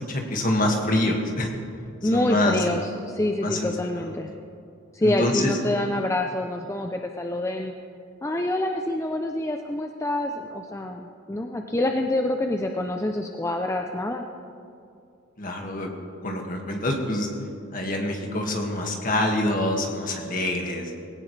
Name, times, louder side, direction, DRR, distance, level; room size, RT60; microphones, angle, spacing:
voice 1, 0.1-1.5 2.1-2.5 3.4-3.7 5.0-5.5 15.4-15.9 16.2-17.3 17.7-20.9, left 1 dB, 40° left, 1 dB, 2.0 m, -25 dB
voice 2, 2.0-4.3 4.9-7.7 8.2-14.2, left 1 dB, 15° left, 3 dB, 0.5 m, -26 dB
20.0 x 17.5 x 3.3 m, 2.5 s
head